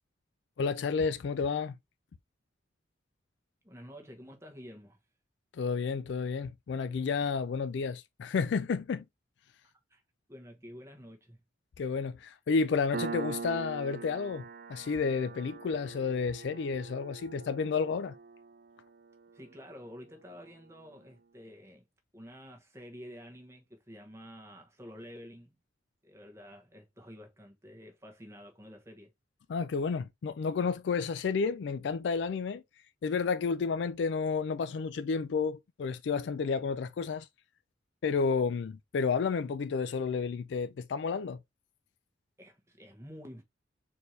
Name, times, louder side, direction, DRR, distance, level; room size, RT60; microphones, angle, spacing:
voice 1, 0.6-1.7 5.5-9.0 11.8-14.4 14.7-18.1 29.5-32.6 33.0-37.3 38.0-41.4, left 5 dB, 65° left, 0.3 m, -31 dB
voice 2, 3.6-5.0 9.6-10.0 10.3-11.4 19.3-21.8 22.1-25.6 26.0-29.1 42.4-43.4, equal, 15° right, 1.1 m, -49 dB
Piano, 12.9-20.1, right 4 dB, 55° right, 0.4 m, -43 dB
4.3 x 2.8 x 3.2 m
head